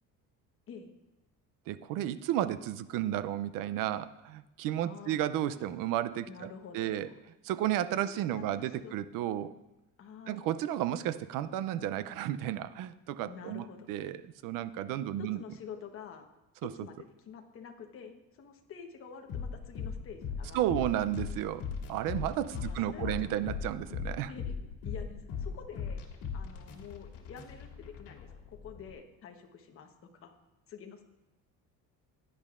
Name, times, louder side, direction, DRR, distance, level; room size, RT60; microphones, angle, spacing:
voice 1, 1.7-7.1 7.4-9.5 10.3-15.4 16.6-16.7 20.5-24.3, right 12 dB, 65° right, 15 dB, 0.5 m, -33 dB
voice 2, 4.8-5.2 6.2-7.1 8.2-8.9 10.0-10.5 13.3-13.9 15.2-16.3 16.6-20.6 22.5-23.3 24.3-24.5 24.8-26.0 26.3-30.3 30.7-31.0, left 6 dB, 35° left, 4 dB, 1.1 m, -48 dB
sound 1, 19.3-28.9, left 6 dB, 75° left, 1.9 m, -39 dB
16.0 x 10.5 x 2.5 m, 0.97 s
cardioid pair, 160°, 36 cm